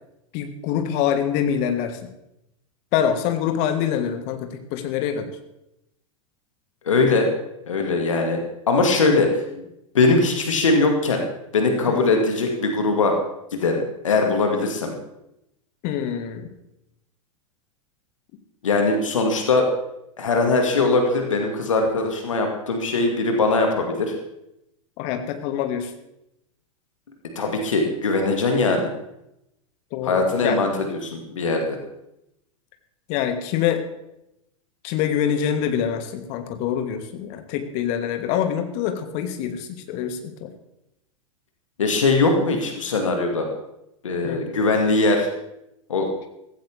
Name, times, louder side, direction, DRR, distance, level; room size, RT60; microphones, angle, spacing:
voice 1, 0.3-2.1 2.9-5.3 11.9-12.0 15.8-16.5 25.0-25.9 29.9-30.6 33.1-33.8 34.8-40.5 44.2-44.4, left 9 dB, 45° left, 7 dB, 1.8 m, -25 dB
voice 2, 6.9-7.3 7.7-8.4 8.7-9.3 9.9-11.2 11.5-13.2 13.5-14.9 18.6-19.7 20.2-24.1 27.4-28.9 30.0-31.8 41.8-43.5 44.0-45.3 45.9-46.1, left 3 dB, 70° left, 3 dB, 2.2 m, -21 dB
15.5 x 15.5 x 3.5 m, 0.86 s
figure-of-eight pair, 90°, 17 cm